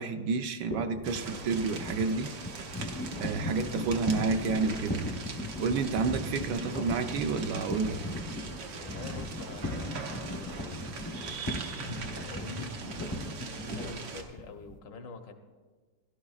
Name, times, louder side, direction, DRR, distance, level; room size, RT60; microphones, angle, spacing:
voice 1, 0.0-2.3 3.2-5.1 5.6-8.0, right 4 dB, 75° right, 7 dB, 1.2 m, -30 dB
sound 1, 0.7-14.8, left 1 dB, 25° left, 0.4 m, -38 dB
sound 2, 1.0-14.2, right 4 dB, 90° right, 1.6 m, -42 dB
voice 2, 8.7-11.2 11.8-12.7 13.6-15.3, left 4 dB, 80° left, 5 dB, 1.6 m, -46 dB
16.0 x 12.0 x 2.4 m, 1.4 s
omnidirectional pair, 2.0 m